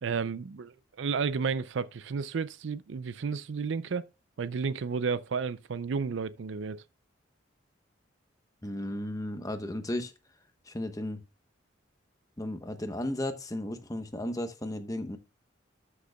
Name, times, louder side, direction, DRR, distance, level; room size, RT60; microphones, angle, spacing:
voice 1, 0.0-4.1 4.4-6.8, right 5 dB, 70° right, 0.4 m, -32 dB
voice 2, 8.6-10.1 10.7-11.2 12.4-15.2, left 1 dB, 15° left, 0.9 m, -34 dB
12.5 x 6.6 x 2.3 m
head